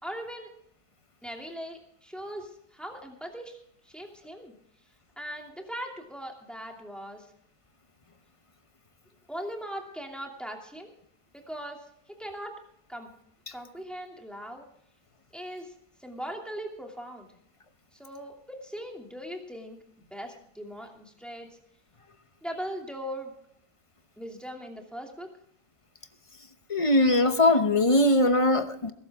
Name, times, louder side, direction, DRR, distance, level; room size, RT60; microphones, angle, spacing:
voice 1, 0.0-0.5 1.2-3.6 3.8-4.5 5.2-7.2 9.3-10.9 11.3-11.8 12.2-12.6 12.9-13.1 13.5-14.6 15.3-15.7 16.0-17.3 17.9-21.6 22.4-23.3 24.2-25.3, equal, ahead, 1 dB, 2.6 m, -39 dB
voice 2, 26.7-28.9, left 1 dB, 25° left, 9 dB, 0.8 m, -21 dB
21.5 x 12.0 x 3.6 m, 0.70 s
omnidirectional pair, 1.6 m